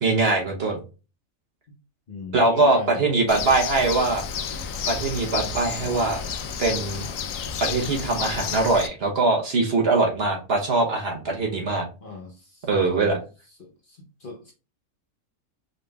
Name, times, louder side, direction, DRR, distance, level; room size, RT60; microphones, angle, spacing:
voice 1, 0.0-0.8 2.3-4.2 4.9-6.2 6.6-7.0 7.6-11.9 12.6-13.2, right 3 dB, 50° right, 1 dB, 1.0 m, -22 dB
voice 2, 2.1-3.1 12.0-13.2 13.6-14.5, left 3 dB, 45° left, 0 dB, 0.8 m, -38 dB
Bird, 3.3-8.9, left 6 dB, 75° left, 1.0 m, -31 dB
5.1 x 3.5 x 2.3 m, 0.32 s
omnidirectional pair, 1.4 m